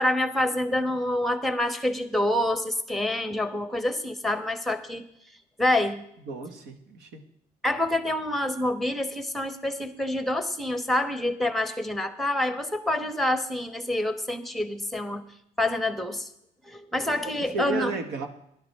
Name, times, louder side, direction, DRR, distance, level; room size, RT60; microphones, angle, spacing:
voice 1, 0.0-5.0 5.6-6.0 7.6-15.2 15.6-16.3 16.7-17.9, left 1 dB, ahead, 9 dB, 1.2 m, -27 dB
voice 2, 6.3-7.2 17.2-18.3, right 3 dB, 80° right, 6 dB, 1.9 m, -33 dB
16.5 x 11.5 x 3.6 m, 0.74 s
cardioid pair, 110°, 17 cm